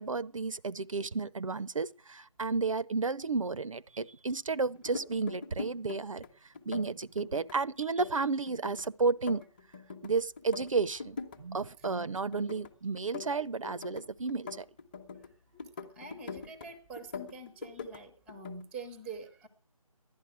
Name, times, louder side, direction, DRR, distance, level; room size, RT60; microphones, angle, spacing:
voice 1, 0.0-9.4 10.0-14.7, right 4 dB, 65° right, 0.7 m, -32 dB
sound 1, 4.7-6.3 6.5-7.5 7.8-10.1 10.4-11.4 11.7-12.7 13.0-15.3 15.6-16.7 17.0-18.0 18.3-18.6, left 5 dB, 15° left, 1.0 m, -43 dB
voice 2, 15.9-19.5, right 3 dB, 5° right, 0.7 m, -45 dB
15.5 x 11.0 x 7.9 m
figure-of-eight pair, 160°, 19 cm